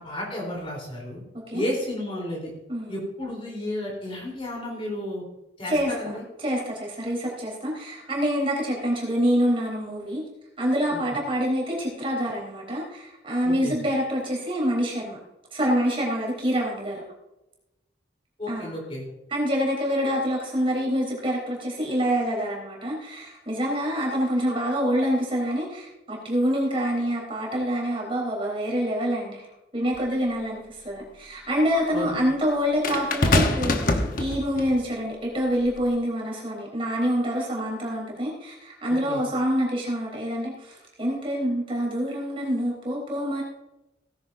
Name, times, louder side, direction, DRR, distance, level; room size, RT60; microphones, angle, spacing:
voice 1, 0.0-1.2 1.5-2.5 2.9-5.2 5.6-6.2 10.9-11.0 13.4-13.8 18.4-19.0 31.9-32.2 39.1-39.2, left 1 dB, 30° left, -2 dB, 3.8 m, -32 dB
voice 2, 2.7-3.1 5.7-6.1 6.4-10.2 10.6-15.2 15.5-17.0 18.5-18.8 19.3-29.5 29.7-43.4, equal, 30° right, -2 dB, 4.0 m, -26 dB
sound 1, 29.9-30.0 32.8-34.7 35.6-35.9, left 2 dB, 50° left, 1.1 m, -24 dB
17.0 x 10.5 x 2.7 m, 0.95 s
head